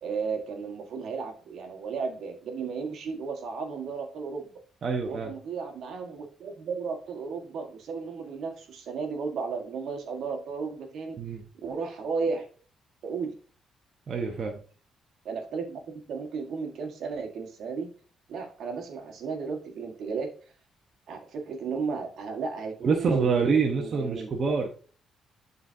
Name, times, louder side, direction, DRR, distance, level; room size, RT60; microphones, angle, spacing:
voice 1, 0.0-4.5 5.0-11.2 11.6-12.5 13.0-13.4 15.2-17.9 18.3-20.3 21.1-24.5, right 5 dB, 70° right, 4 dB, 1.5 m, -34 dB
voice 2, 4.8-5.3 11.2-11.4 14.1-14.6 22.8-24.7, right 5 dB, 50° right, 2 dB, 1.0 m, -26 dB
11.0 x 4.0 x 2.7 m, 0.41 s
cardioid pair, 90°, 0 cm